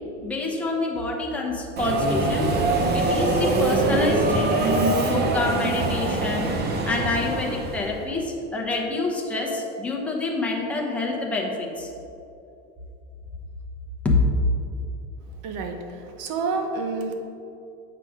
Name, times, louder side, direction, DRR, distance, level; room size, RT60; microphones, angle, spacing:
voice 1, 0.2-2.5 2.9-11.9 14.0-14.2, left 3 dB, 5° left, -3 dB, 0.9 m, -27 dB
Subway metro underground, 1.8-8.0, right 2 dB, 25° right, 0.7 m, -23 dB
voice 2, 15.4-15.8 16.2-17.1, right 4 dB, 55° right, 5 dB, 1.0 m, -28 dB
7.6 x 5.9 x 3.6 m, 2.7 s
supercardioid pair, 135°, 37 cm